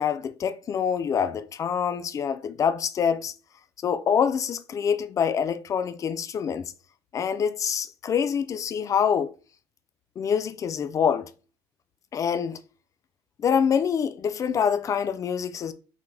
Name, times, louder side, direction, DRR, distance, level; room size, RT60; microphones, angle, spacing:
voice 1, 0.0-3.3 3.8-6.7 7.1-9.3 10.2-11.3 12.1-12.6 13.4-15.7, left 7 dB, 35° left, 0.4 m, -25 dB
6.0 x 2.1 x 3.3 m
cardioid pair, 125°, 10 cm